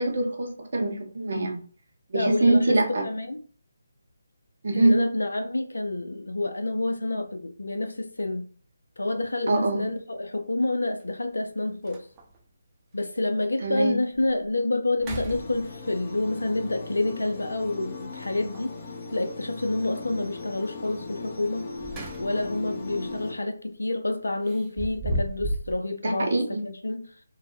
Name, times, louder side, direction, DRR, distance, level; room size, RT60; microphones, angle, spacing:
voice 1, 0.0-1.6 2.1-3.0 4.6-5.0 9.5-9.9 13.6-13.9 26.0-26.6, right 2 dB, 60° right, 2 dB, 0.7 m, -24 dB
voice 2, 2.1-3.4 4.7-8.4 9.0-12.1 12.9-18.7 19.1-21.7 22.2-26.3 26.6-27.1, left 2 dB, 80° left, 6 dB, 0.4 m, -28 dB
sound 1, 9.2-9.3 11.0-11.1 11.5-11.6 11.8-12.4 13.0-13.1 13.6-13.7 14.1-14.5 14.9-16.0 18.1-18.8 21.5-22.6 22.9-23.2 24.4-25.8, right 1 dB, 15° right, 0.6 m, -34 dB
sound 2, 15.3-23.3, left 3 dB, 25° left, 0.6 m, -38 dB
2.1 x 2.0 x 3.1 m, 0.42 s
figure-of-eight pair, 150°, 0 cm